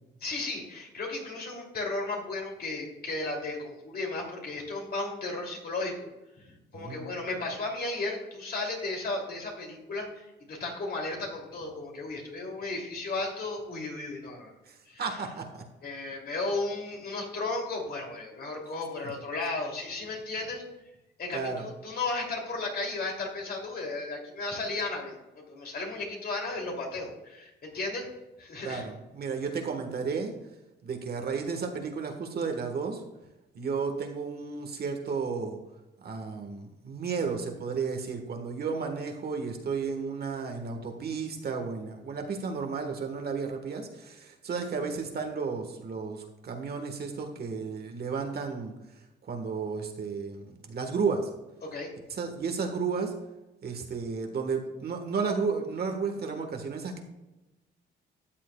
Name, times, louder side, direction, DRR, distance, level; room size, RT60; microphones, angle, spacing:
voice 1, 0.2-6.0 6.7-14.5 14.9-15.0 15.8-20.6 21.2-28.1 28.4-28.9 51.6-51.9, left 3 dB, 50° left, 0 dB, 2.6 m, -34 dB
voice 2, 6.7-7.1 14.7-15.6 21.3-21.7 28.6-30.3 30.8-33.0 33.5-35.6 36.0-48.7 49.2-51.3 52.1-53.1 53.6-57.0, right 5 dB, 55° right, 4 dB, 1.3 m, -33 dB
13.0 x 7.4 x 2.2 m, 1.0 s
cardioid pair, 90°, 20 cm